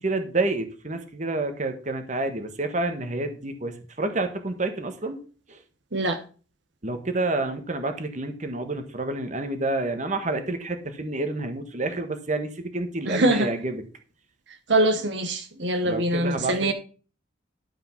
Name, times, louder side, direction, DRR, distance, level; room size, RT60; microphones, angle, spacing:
voice 1, 0.0-5.2 5.5-5.6 6.8-13.8 15.8-16.7, right 2 dB, 40° right, 1.4 m, -29 dB
voice 2, 13.1-13.5 14.7-16.7, right 1 dB, 65° right, 1.1 m, -23 dB
12.0 x 5.2 x 5.7 m
head